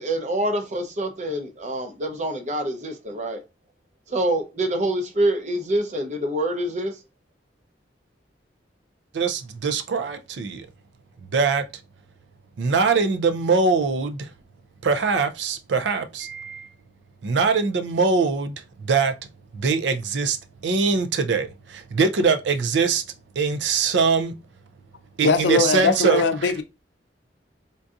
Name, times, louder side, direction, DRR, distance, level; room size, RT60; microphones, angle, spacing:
voice 1, 0.0-3.4 4.1-6.9, right 1 dB, 40° right, 0.6 m, -26 dB
voice 2, 9.1-10.7 11.3-11.6 12.6-14.2 14.8-16.6 17.2-18.5 18.9-19.1 19.5-20.4 20.6-21.5 21.9-23.0 23.4-24.3 25.2-26.2, right 4 dB, 85° right, 0.4 m, -22 dB
voice 3, 25.2-26.6, left 4 dB, 90° left, 0.5 m, -20 dB
3.8 x 2.6 x 2.4 m
head